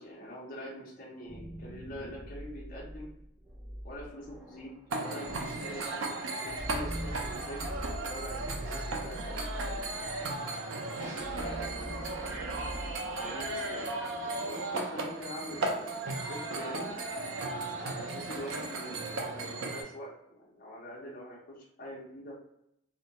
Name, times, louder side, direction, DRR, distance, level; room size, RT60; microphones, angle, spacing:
voice 1, 0.0-3.1 3.8-9.8 11.0-11.9 13.2-13.9 14.4-16.9 17.8-22.3, equal, 40° left, -4 dB, 0.6 m, -44 dB
sound 1, 1.3-13.9, equal, ahead, 0.4 m, -43 dB
sound 2, 4.9-19.8, right 2 dB, 65° right, 0.4 m, -36 dB
2.2 x 2.1 x 2.8 m, 0.79 s
head